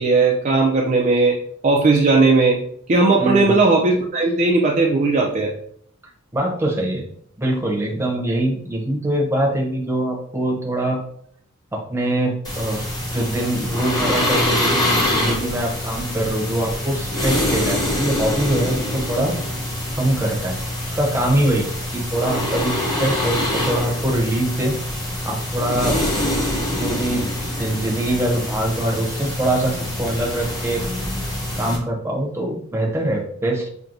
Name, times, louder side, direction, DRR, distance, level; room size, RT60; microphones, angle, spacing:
voice 1, 0.0-1.4 1.6-2.6 2.9-5.5, right 3 dB, 35° right, -1 dB, 0.4 m, -17 dB
voice 2, 3.2-3.6 6.3-7.0 7.4-11.0 11.7-12.8 13.1-19.4 19.9-20.6 20.8-24.7 25.2-26.0 26.7-30.8 31.2-33.7, right 1 dB, 10° right, -2 dB, 0.7 m, -23 dB
sound 1, 12.4-31.8, left 1 dB, 20° left, 1.0 m, -25 dB
5.9 x 2.2 x 2.5 m, 0.65 s
head